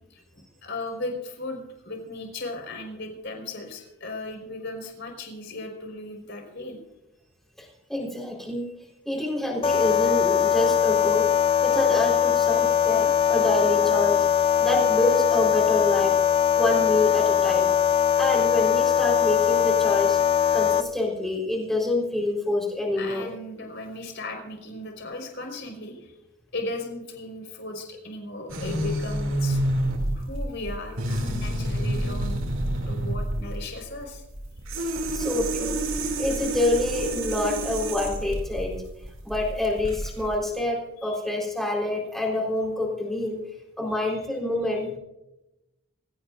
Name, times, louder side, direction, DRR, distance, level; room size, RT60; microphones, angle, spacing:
voice 1, 0.1-6.8 23.0-26.2 26.5-29.6 30.1-32.4 32.9-34.2 41.0-41.2, left 2 dB, 55° left, 2 dB, 4.9 m, -36 dB
voice 2, 7.6-8.6 9.1-11.3 11.6-14.3 14.6-16.2 16.5-17.7 18.2-20.2 20.5-23.3 34.8-34.9 35.1-35.8 36.2-38.8 39.2-43.4 43.8-45.0, left 2 dB, ahead, -3 dB, 4.2 m, -27 dB
sound 1, 9.6-20.8, left 8 dB, 25° left, 0.6 m, -21 dB
sound 2, 28.5-40.4, right 1 dB, 70° right, 2.7 m, -29 dB
26.0 x 16.5 x 2.6 m, 0.95 s
head